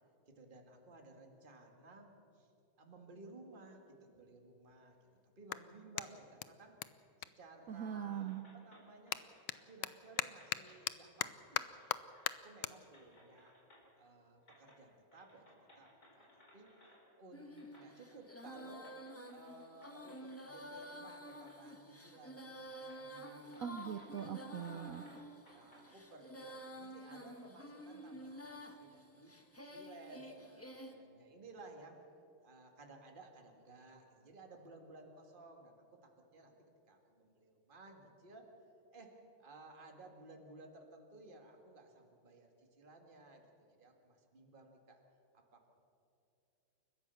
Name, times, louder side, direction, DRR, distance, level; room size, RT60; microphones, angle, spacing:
voice 1, 0.3-2.5 2.8-5.0 5.4-6.8 7.2-9.3 9.6-12.0 12.3-13.5 14.0-16.7 17.2-18.9 19.3-23.6 24.1-24.2 24.5-25.2 25.5-29.3 29.6-32.0 32.4-36.6 36.9-38.5 38.9-39.1 39.4-45.0 45.3-45.7, right 2 dB, 25° right, 3 dB, 2.1 m, -57 dB
Clapping, 3.4-3.5 4.1-8.2 8.5-15.1, left 13 dB, 75° left, 1.4 m, -44 dB
voice 2, 7.7-8.4 23.6-25.0, right 9 dB, 75° right, 10 dB, 0.8 m, -41 dB
sound 1, 8.3-10.8 11.1-12.4 12.7-14.1 14.4-14.8 15.1-17.0 17.6-21.6 22.0-22.1 22.7-25.8, left 1 dB, 45° left, 5.2 m, -65 dB
Female singing, 17.3-30.9, equal, 10° left, 1.1 m, -51 dB
30.0 x 14.0 x 7.0 m, 2.8 s
omnidirectional pair, 2.3 m